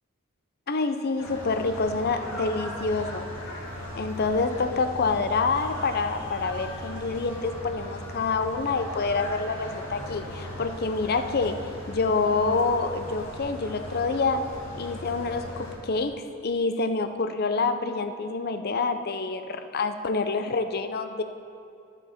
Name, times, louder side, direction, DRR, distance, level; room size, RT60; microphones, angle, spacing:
voice 1, 0.7-3.3 4.0-11.6 11.9-14.5 14.8-21.2, left 4 dB, 45° left, 9 dB, 0.5 m, -27 dB
sound 1, 1.2-15.8, left 1 dB, 60° left, 2.4 m, -38 dB
13.0 x 6.8 x 4.3 m, 2.6 s
head